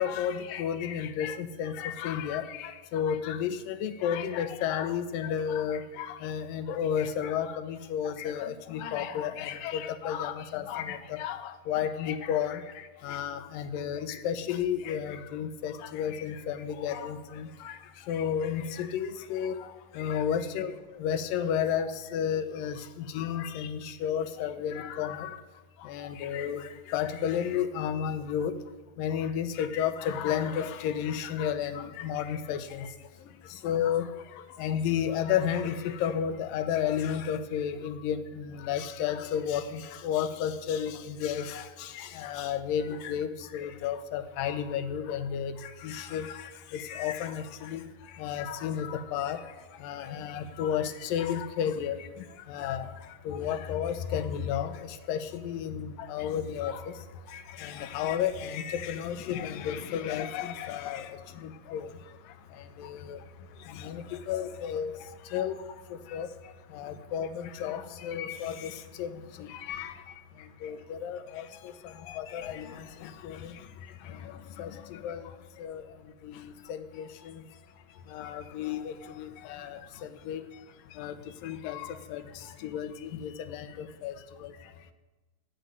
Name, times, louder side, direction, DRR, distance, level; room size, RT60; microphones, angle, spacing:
voice 1, 0.0-11.4 11.7-12.6 13.0-17.7 18.1-19.5 20.0-20.7 21.0-22.8 23.1-25.3 25.9-28.5 29.0-32.8 33.6-34.1 34.6-41.6 42.2-45.5 45.8-46.3 46.7-47.8 48.2-49.4 49.8-52.0 52.5-52.9 53.3-54.7 55.1-56.8 57.6-61.1 61.7-61.9 63.1-63.2 63.8-64.9 65.3-65.5 66.1-66.3 66.8-67.3 67.6-68.7 69.0-69.1 69.7-69.9 70.6-71.5 72.1-72.7 73.2-73.4 74.6-74.7 75.0-75.2 75.6-75.8 76.7-77.1 78.1-79.8 80.3-80.4 81.0-81.1 81.4-82.2 82.6-82.9 83.2-83.7 84.0-84.1, left 8 dB, 80° left, 10 dB, 2.6 m, -32 dB
17.5 x 7.9 x 9.4 m, 1.2 s
omnidirectional pair, 4.0 m